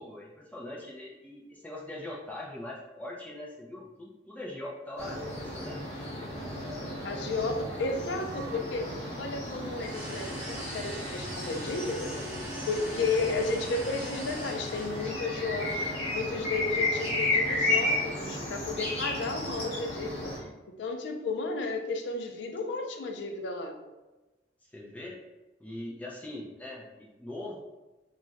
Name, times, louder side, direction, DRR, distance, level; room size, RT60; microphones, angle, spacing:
voice 1, 0.0-5.8 24.7-25.2 25.6-27.6, left 1 dB, 10° left, -3 dB, 0.4 m, -41 dB
sound 1, 5.0-20.4, left 1 dB, 35° left, 0.9 m, -33 dB
voice 2, 7.0-12.3 12.6-23.8, left 3 dB, 80° left, 4 dB, 0.4 m, -33 dB
sound 2, 9.7-15.3, right 1 dB, 10° right, 0.8 m, -43 dB
2.3 x 2.1 x 3.8 m, 1.1 s
head